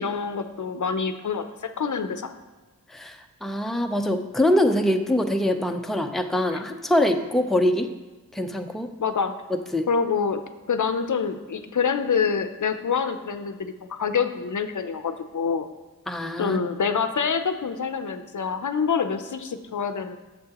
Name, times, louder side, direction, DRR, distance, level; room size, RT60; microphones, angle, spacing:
voice 1, 0.0-2.3 6.5-6.6 9.0-9.3 9.9-10.4 10.7-15.7 16.4-20.2, left 6 dB, 60° left, 9 dB, 0.6 m, -26 dB
voice 2, 2.9-7.9 8.3-8.9 9.7-9.9 16.1-16.6, left 1 dB, ahead, 4 dB, 0.6 m, -24 dB
9.3 x 6.8 x 2.9 m, 1.2 s
cardioid pair, 50°, 34 cm